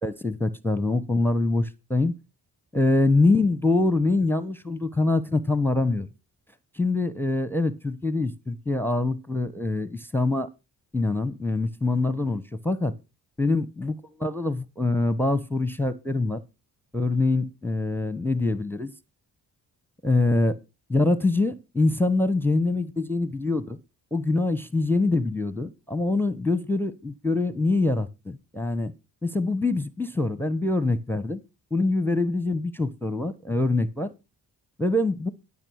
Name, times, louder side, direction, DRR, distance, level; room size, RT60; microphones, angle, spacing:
voice 1, 0.0-2.1 2.7-6.1 6.7-10.5 10.9-12.9 13.4-13.9 14.2-16.4 16.9-18.9 20.0-20.6 20.9-23.8 24.1-28.9 29.2-31.4 31.7-34.1 34.8-35.3, left 2 dB, 5° left, 1.0 m, -24 dB
12.5 x 5.4 x 6.4 m
supercardioid pair, 50°, 41 cm